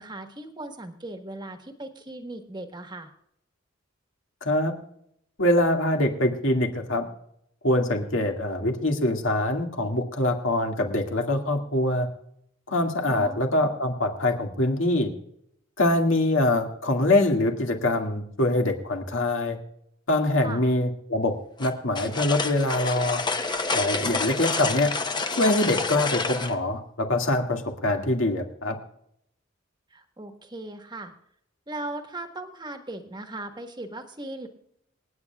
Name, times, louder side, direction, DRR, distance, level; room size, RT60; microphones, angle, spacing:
voice 1, 0.0-3.1 13.1-13.4 20.4-20.6 29.9-31.1 31.7-34.5, right 2 dB, 20° right, 6 dB, 1.3 m, -38 dB
voice 2, 4.4-4.7 5.4-7.0 7.6-12.1 12.7-15.1 15.8-19.6 20.1-21.3 21.6-23.2 23.7-24.9 25.4-28.8, left 1 dB, 80° left, 2 dB, 2.0 m, -24 dB
sound 1, 21.6-26.6, left 4 dB, 25° left, 0.8 m, -28 dB
28.0 x 9.4 x 2.3 m, 0.73 s
head